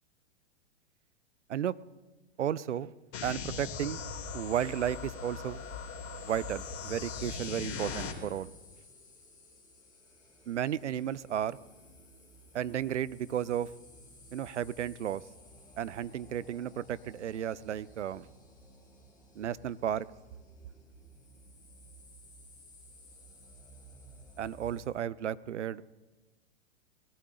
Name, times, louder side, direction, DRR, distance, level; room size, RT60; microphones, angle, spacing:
voice 1, 2.4-2.9 3.2-4.0 4.3-5.6 6.2-8.5 10.5-11.6 12.5-13.7 14.3-15.2 15.8-18.3 19.3-20.1 24.4-25.8, right 10 dB, 85° right, 19 dB, 0.5 m, -33 dB
sound 1, 3.1-8.1, left 5 dB, 40° left, 2.6 m, -39 dB
sound 2, 6.5-24.9, equal, 10° left, 3.8 m, -56 dB
19.5 x 14.0 x 3.8 m, 1.2 s
hypercardioid pair, 110°, 34 cm